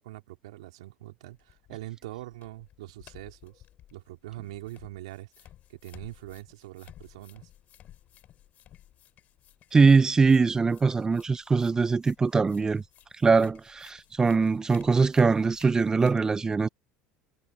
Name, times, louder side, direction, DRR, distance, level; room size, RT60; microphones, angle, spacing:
voice 1, 0.0-3.6 3.9-7.5, right 16 dB, 90° right, 3.9 m, -43 dB
sound 1, 1.3-16.1, left 12 dB, 55° left, 6.9 m, -56 dB
voice 2, 9.7-12.8 13.2-16.7, right 4 dB, 20° right, 0.6 m, -22 dB
supercardioid pair, 95°, 3 cm